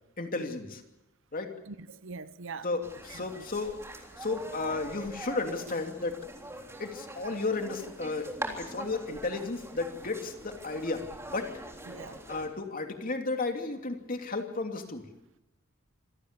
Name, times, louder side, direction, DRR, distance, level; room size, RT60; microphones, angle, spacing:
voice 1, 0.2-0.8 1.3-1.5 2.6-3.8 4.2-6.2 6.8-11.5 12.3-15.1, left 3 dB, 40° left, 2.9 m, -33 dB
voice 2, 1.7-2.7 3.1-3.5 11.9-12.2, right 4 dB, 65° right, 1.0 m, -43 dB
sound 1, 2.8-12.5, right 1 dB, 15° right, 3.5 m, -43 dB
26.5 x 18.0 x 6.9 m
head